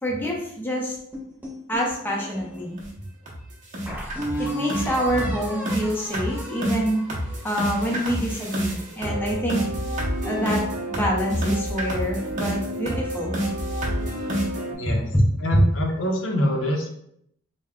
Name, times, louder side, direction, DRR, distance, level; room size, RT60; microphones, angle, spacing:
voice 1, 0.0-1.0 1.7-2.8 4.4-7.0 7.4-9.6 10.2-13.3 14.9-15.0 15.5-15.6, equal, 10° left, -3 dB, 0.6 m, -26 dB
sound 1, 1.1-2.7 3.2-3.3 3.9-8.0, equal, 10° right, 0.9 m, -34 dB
sound 2, 2.3-2.4 2.8-2.9 3.3-3.4 3.7-14.7, equal, 40° right, 0.7 m, -28 dB
voice 2, 14.7-15.1 15.4-16.9, equal, 70° left, 1 dB, 0.6 m, -25 dB
3.3 x 2.2 x 3.6 m, 0.71 s
head